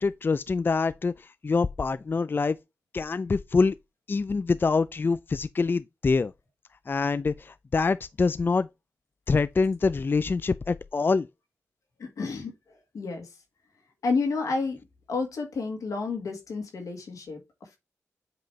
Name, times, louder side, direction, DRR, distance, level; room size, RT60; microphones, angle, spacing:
voice 1, 0.0-2.6 2.9-3.7 4.1-6.3 6.9-8.7 9.3-11.3, left 4 dB, 40° left, 0.3 m, -25 dB
voice 2, 12.0-12.5 12.9-13.3 14.0-17.4, left 4 dB, 80° left, 1.8 m, -30 dB
7.6 x 3.1 x 4.6 m
cardioid pair, 50°, 6 cm